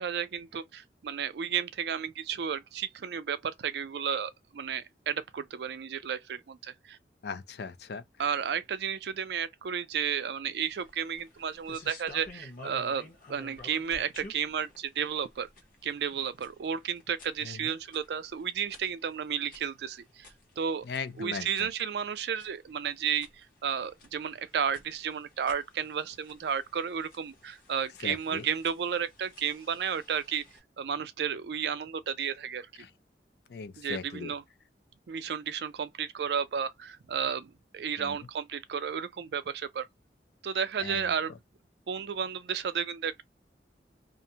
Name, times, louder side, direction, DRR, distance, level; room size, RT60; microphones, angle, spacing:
voice 1, 0.0-7.0 8.2-15.5 15.8-20.3 20.6-20.8 21.2-23.3 23.6-30.4 30.8-32.8 33.8-34.4 35.1-39.9 40.4-41.3 41.9-43.2, right 7 dB, 70° right, 0.4 m, -32 dB
voice 2, 7.2-8.0 17.4-17.7 20.8-21.7 28.0-28.5 32.8-32.9 33.5-34.3 38.0-38.2 40.8-41.1, left 5 dB, 65° left, 0.4 m, -38 dB
sound 1, 10.7-30.6, left 2 dB, 50° left, 0.8 m, -53 dB
2.5 x 2.1 x 2.7 m
head